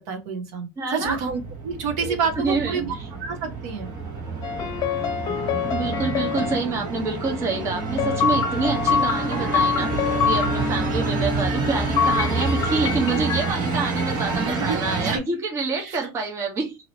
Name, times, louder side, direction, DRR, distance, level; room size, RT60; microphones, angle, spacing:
voice 1, 0.1-3.9 14.4-15.3 15.8-16.0, right 5 dB, 75° right, 1.1 m, -29 dB
voice 2, 0.8-1.2 2.0-2.8 5.7-16.8, right 4 dB, 30° right, 1.0 m, -27 dB
sound 1, 1.0-15.2, right 3 dB, 50° right, 1.2 m, -28 dB
sound 2, 4.4-6.6 8.0-10.6 12.0-13.5, left 7 dB, 40° left, 0.9 m, -25 dB
Bowed string instrument, 8.6-13.2, left 3 dB, 5° left, 0.3 m, -32 dB
3.0 x 2.8 x 2.8 m
cardioid pair, 145°, 10 cm